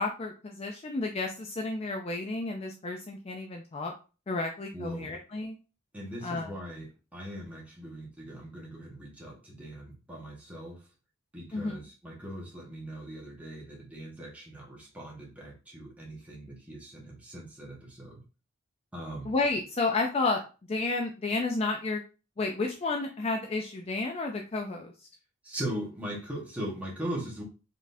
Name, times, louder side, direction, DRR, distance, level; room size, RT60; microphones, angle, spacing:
voice 1, 0.0-3.9 4.3-5.6 6.2-6.5 11.5-11.8 19.3-20.4 20.7-22.0 22.4-24.9, left 3 dB, 30° left, 2 dB, 0.4 m, -31 dB
voice 2, 4.7-5.1 5.9-10.8 11.3-18.2 18.9-19.3 25.4-27.4, right 1 dB, 5° right, -3 dB, 1.3 m, -40 dB
4.0 x 3.6 x 2.7 m, 0.33 s
head